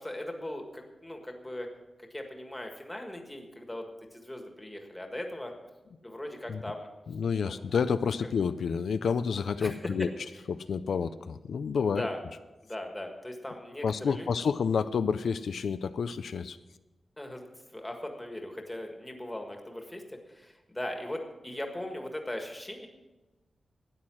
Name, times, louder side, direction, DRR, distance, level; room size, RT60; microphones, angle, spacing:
voice 1, 0.0-1.7 2.1-5.5 6.0-6.9 7.4-7.6 8.2-8.3 9.6-9.8 10.9-11.0 11.9-12.2 12.6-14.5 17.2-17.4 17.7-22.9, left 1 dB, 10° left, 3 dB, 1.6 m, -39 dB
voice 2, 7.1-10.1 10.5-12.1 13.8-16.6, left 6 dB, 80° left, 11 dB, 0.4 m, -29 dB
13.0 x 9.7 x 6.2 m, 1.1 s
wide cardioid pair, 170°, 0 cm